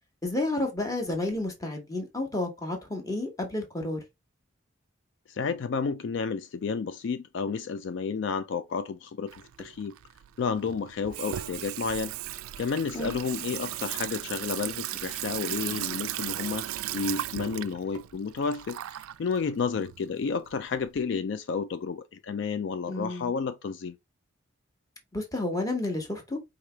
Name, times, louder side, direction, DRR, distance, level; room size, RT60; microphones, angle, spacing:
voice 1, 0.2-4.0 12.9-13.2 22.9-23.3 25.1-26.4, left 2 dB, 15° left, 1.1 m, -31 dB
voice 2, 5.3-9.9 10.4-12.1 12.6-24.0, left 5 dB, 60° left, 0.3 m, -31 dB
Water tap faucet / Sink (filling or washing), 9.3-21.0, right 13 dB, 90° right, 0.3 m, -36 dB
4.8 x 2.9 x 3.3 m
head